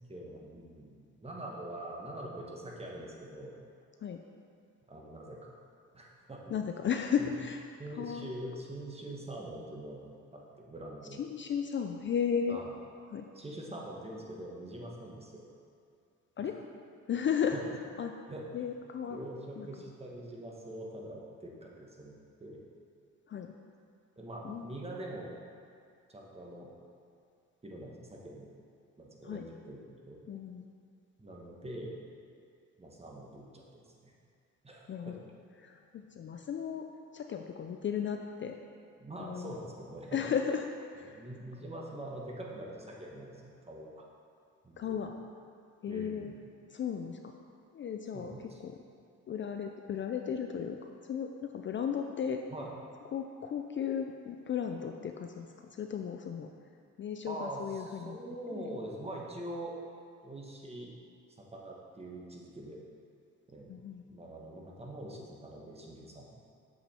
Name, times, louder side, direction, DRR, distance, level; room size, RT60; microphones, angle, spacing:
voice 1, 0.0-3.6 4.9-5.5 5.9-6.5 7.2-7.3 7.8-11.2 12.5-12.7 13.3-15.4 16.4-16.5 17.5-17.6 18.3-18.7 19.0-22.1 22.4-22.6 24.2-25.4 26.1-26.7 27.6-28.5 29.0-30.2 31.2-31.9 32.8-34.1 34.6-35.2 39.0-40.2 41.0-43.9 44.6-45.1 45.9-46.4 48.1-48.8 52.5-52.7 57.3-59.7 60.2-60.9 61.4-62.8 63.5-63.8 64.1-66.5, right 1 dB, 20° right, -2 dB, 1.3 m, -44 dB
voice 2, 6.5-7.6 8.0-8.3 11.2-12.6 13.1-13.3 16.4-16.6 17.1-17.6 18.0-18.1 18.5-19.2 19.6-19.7 23.3-23.5 24.4-24.7 29.2-29.4 30.3-30.6 34.9-35.2 35.6-36.9 37.1-38.6 39.2-39.5 40.1-41.2 44.8-45.1 45.8-46.3 46.7-47.2 47.7-48.4 48.6-48.8 49.3-50.8 51.1-52.4 53.1-56.5 57.0-58.2 58.5-58.7 63.7-64.0, left 7 dB, 40° left, 4 dB, 0.4 m, -35 dB
7.0 x 5.6 x 4.3 m, 2.4 s
cardioid pair, 90°, 30 cm